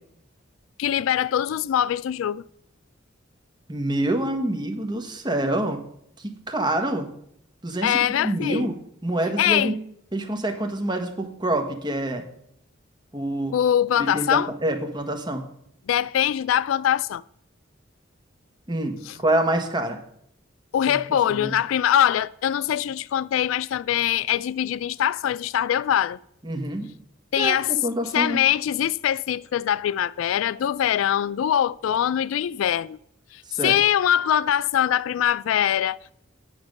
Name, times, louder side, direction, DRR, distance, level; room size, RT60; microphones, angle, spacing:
voice 1, 0.8-2.4 7.8-8.7 9.4-9.7 13.5-14.5 15.9-17.2 19.1-19.2 20.7-26.2 27.3-27.7 28.1-33.0 33.3-36.1, left 10 dB, 85° left, 0.3 m, -23 dB
voice 2, 3.7-5.8 6.2-7.1 7.6-9.8 10.1-12.2 13.1-13.6 14.0-15.5 18.7-20.0 20.9-21.5 26.4-26.9 27.4-28.4 33.5-33.8, right 1 dB, 25° right, 1.4 m, -27 dB
9.4 x 7.0 x 6.5 m
head